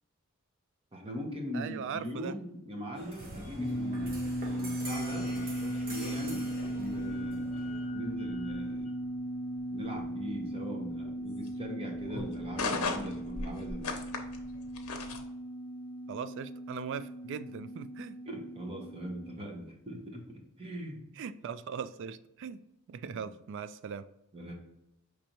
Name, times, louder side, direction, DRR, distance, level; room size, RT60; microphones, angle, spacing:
voice 1, 0.9-8.9 9.7-14.0 18.3-21.0 23.1-23.3 24.3-24.5, equal, 25° right, 1.0 m, -41 dB
voice 2, 1.5-2.3 16.1-18.2 21.2-22.6 22.9-24.0, right 6 dB, 55° right, 0.3 m, -39 dB
sound 1, 2.9-7.9, right 1 dB, 40° right, 1.1 m, -45 dB
sound 2, 3.6-19.4, right 1 dB, 15° left, 0.4 m, -37 dB
sound 3, 5.0-15.2, left 4 dB, 85° left, 0.8 m, -41 dB
5.2 x 3.3 x 2.9 m
head